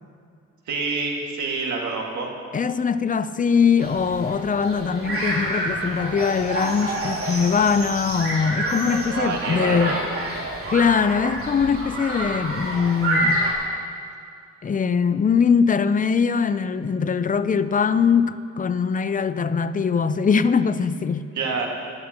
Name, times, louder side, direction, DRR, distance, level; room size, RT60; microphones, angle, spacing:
voice 1, 0.7-2.3 9.1-10.2 21.3-21.7, right 4 dB, 70° right, 2.1 m, -27 dB
voice 2, 2.5-10.0 10.7-13.4 14.6-21.3, left 6 dB, 25° left, 0.5 m, -21 dB
sound 1, 3.8-13.5, right 1 dB, 45° right, 3.1 m, -28 dB
21.5 x 10.5 x 3.0 m
cardioid pair, 90°, 30 cm